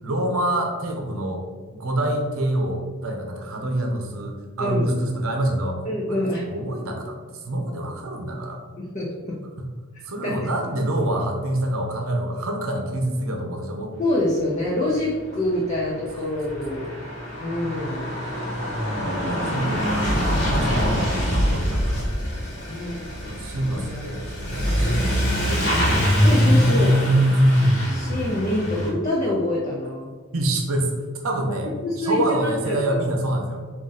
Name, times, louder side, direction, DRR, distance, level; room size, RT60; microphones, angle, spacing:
voice 1, 0.0-5.8 6.1-8.6 9.6-9.7 10.0-13.9 16.1-16.3 18.9-22.1 23.2-27.2 30.3-30.9 31.2-31.7 32.0-33.6, right 1 dB, 75° right, 2 dB, 0.7 m, -27 dB
voice 2, 5.9-6.4 8.8-9.4 10.2-10.5 14.0-16.9 17.4-18.1 22.7-23.0 23.7-24.0 26.2-27.0 27.9-30.1 31.8-32.4 32.7-33.0, left 1 dB, 30° left, -4 dB, 0.6 m, -26 dB
Truck / Accelerating revving vroom, 15.2-15.3 15.5-28.9, equal, 50° left, 1.3 m, -22 dB
3.8 x 2.6 x 3.9 m, 1.5 s
head